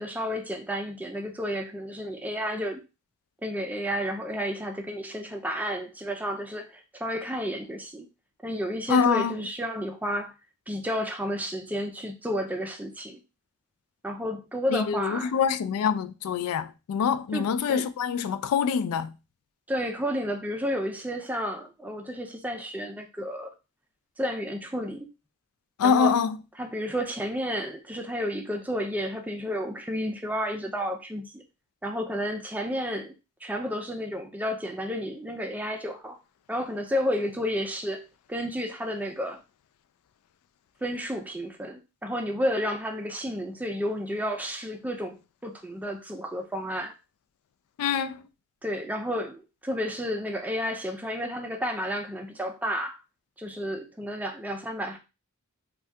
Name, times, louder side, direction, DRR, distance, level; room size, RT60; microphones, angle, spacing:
voice 1, 0.0-2.8 3.4-8.1 8.4-10.3 10.7-13.2 14.0-15.3 17.3-17.9 19.7-23.5 24.2-25.1 25.8-26.1 26.6-31.4 31.8-33.1 33.4-36.2 36.5-39.4 40.8-47.0 48.6-53.0 53.4-55.0, equal, 5° right, 0.4 m, -31 dB
voice 2, 8.9-9.3 14.7-19.1 25.8-26.4 47.8-48.2, left 6 dB, 80° left, 0.3 m, -25 dB
2.7 x 2.3 x 3.3 m
head